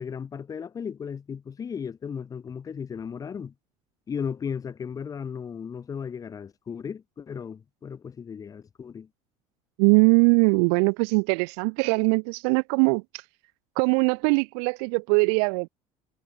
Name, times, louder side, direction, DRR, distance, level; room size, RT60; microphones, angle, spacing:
voice 1, 0.0-3.5 4.1-9.1, left 7 dB, 25° left, 1.1 m, -35 dB
voice 2, 9.8-13.0 13.8-15.7, right 40 dB or more, 85° right, 0.7 m, -21 dB
cardioid pair, 130°, 14 cm